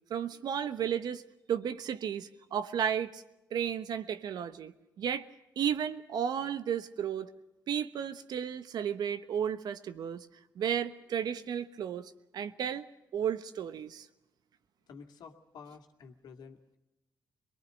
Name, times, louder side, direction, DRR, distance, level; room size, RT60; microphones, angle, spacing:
voice 1, 0.1-1.2 1.5-3.2 3.5-5.3 5.6-7.3 7.7-10.3 10.5-12.9 13.1-14.1, right 8 dB, 70° right, 11 dB, 1.1 m, -33 dB
voice 2, 14.9-16.8, left 5 dB, 70° left, 4 dB, 2.2 m, -51 dB
23.0 x 20.5 x 6.4 m, 0.96 s
supercardioid pair, 55°, 7 cm